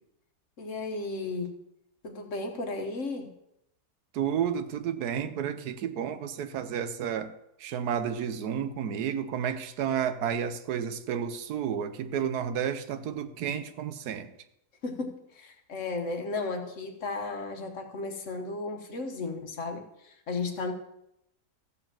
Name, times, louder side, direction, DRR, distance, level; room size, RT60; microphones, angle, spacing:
voice 1, 0.6-1.6 2.0-3.3 14.8-20.7, left 3 dB, 55° left, 1.5 m, -34 dB
voice 2, 4.1-7.3 7.6-14.3, right 8 dB, 85° right, 1.3 m, -31 dB
14.0 x 4.8 x 7.5 m
omnidirectional pair, 1.6 m